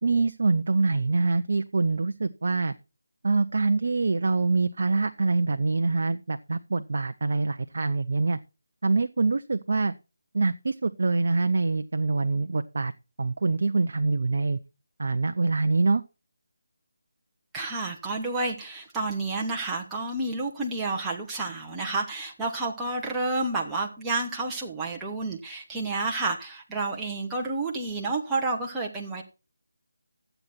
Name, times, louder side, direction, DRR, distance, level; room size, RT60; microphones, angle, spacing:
voice 1, 0.0-2.7 3.2-8.4 8.8-9.9 10.3-12.9 13.2-14.6 15.0-16.0, right 3 dB, 55° right, 9 dB, 0.5 m, -25 dB
voice 2, 17.5-29.2, right 3 dB, 10° right, -2 dB, 1.2 m, -30 dB
12.5 x 7.9 x 4.3 m, 0.31 s
figure-of-eight pair, 155°, 0 cm